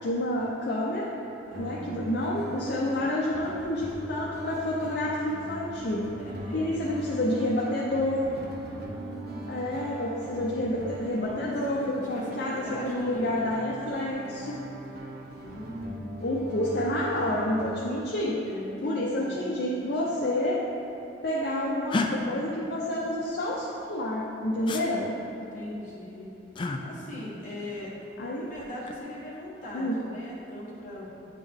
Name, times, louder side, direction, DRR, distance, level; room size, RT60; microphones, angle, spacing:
voice 1, 0.0-1.1 1.6-6.1 6.5-8.3 9.5-14.6 16.2-18.4 18.8-20.6 21.2-25.1 28.2-28.5 29.7-30.0, left 1 dB, 60° left, -5 dB, 0.6 m, -29 dB
voice 2, 1.5-2.4 6.2-7.0 8.8-9.6 11.1-11.4 11.7-13.5 15.4-16.6 18.4-19.5 25.5-26.3 26.8-27.9 28.3-31.1, left 1 dB, 45° left, -6 dB, 1.4 m, -40 dB
sound 1, 1.5-17.7, right 1 dB, 55° right, 0.7 m, -41 dB
sound 2, 21.9-22.1 24.7-24.8 26.5-26.8 28.6-29.0, left 3 dB, 25° left, 0.3 m, -29 dB
9.6 x 3.7 x 3.5 m, 3.0 s
head